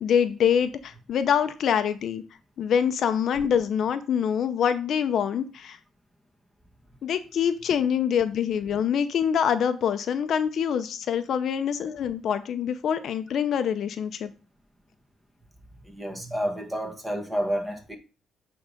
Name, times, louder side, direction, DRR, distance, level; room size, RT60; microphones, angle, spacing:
voice 1, 0.0-2.2 2.6-5.8 7.0-14.3, left 8 dB, 65° left, 0.7 m, -25 dB
voice 2, 15.8-18.0, equal, 10° right, 1.7 m, -30 dB
8.3 x 3.9 x 5.2 m
cardioid pair, 90°, 0 cm